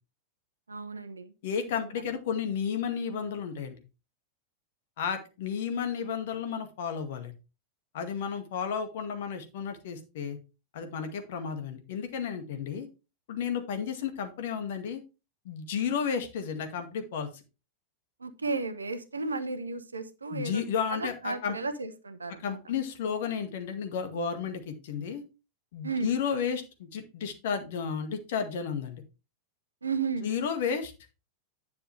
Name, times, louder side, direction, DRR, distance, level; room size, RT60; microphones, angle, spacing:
voice 1, 0.7-1.3 18.2-20.6 20.9-22.4 25.8-26.1 29.8-30.3, right 4 dB, 75° right, 12 dB, 1.0 m, -33 dB
voice 2, 1.4-3.8 5.0-7.3 7.9-10.4 10.7-12.9 13.3-15.0 15.5-17.4 20.3-21.6 22.4-25.2 25.7-29.0 30.2-30.9, left 7 dB, 55° left, 7 dB, 1.9 m, -32 dB
10.0 x 7.0 x 3.3 m, 0.29 s
figure-of-eight pair, 90°, 0 cm